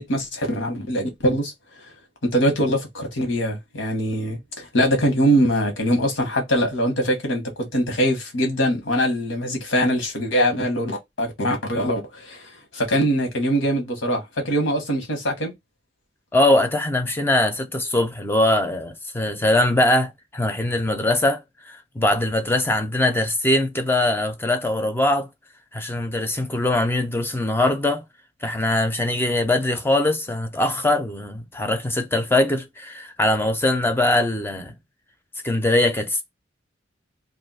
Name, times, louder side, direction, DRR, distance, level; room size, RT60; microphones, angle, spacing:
voice 1, 0.0-1.5 2.3-15.5, equal, 85° left, 1.2 m, -23 dB
voice 2, 16.3-25.3 25.7-28.0 28.4-34.7 35.4-36.2, left 1 dB, 10° left, 0.4 m, -22 dB
2.6 x 2.4 x 4.0 m
head